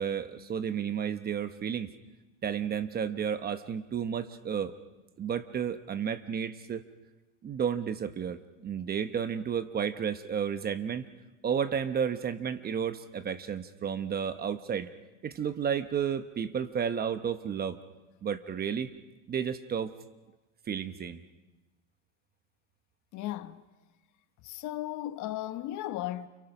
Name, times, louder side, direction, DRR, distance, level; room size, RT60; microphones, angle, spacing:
voice 1, 0.0-1.9 2.4-4.7 5.2-6.8 7.4-11.0 11.4-14.9 15.2-17.8 18.2-18.9 19.3-19.9 20.7-21.2, right 7 dB, 25° right, 0.9 m, -32 dB
voice 2, 23.1-23.6 24.4-26.3, left 14 dB, 45° left, 1.2 m, -35 dB
29.5 x 29.0 x 6.0 m
supercardioid pair, 140°, 41 cm